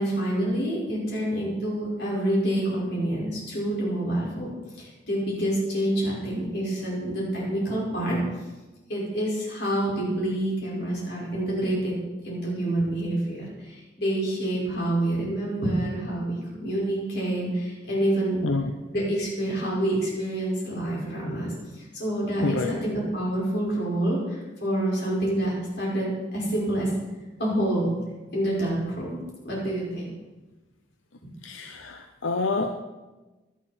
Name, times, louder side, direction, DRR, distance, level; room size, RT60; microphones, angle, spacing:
voice 1, 0.0-4.5 4.8-8.2 8.9-11.9 12.2-18.4 18.9-26.9 27.4-27.9 28.3-29.2 29.4-30.1, right 1 dB, 55° left, -5 dB, 5.7 m, -27 dB
voice 2, 22.4-22.7 31.4-32.7, left 3 dB, 85° left, 5 dB, 0.8 m, -27 dB
17.0 x 11.0 x 4.5 m, 1.2 s
head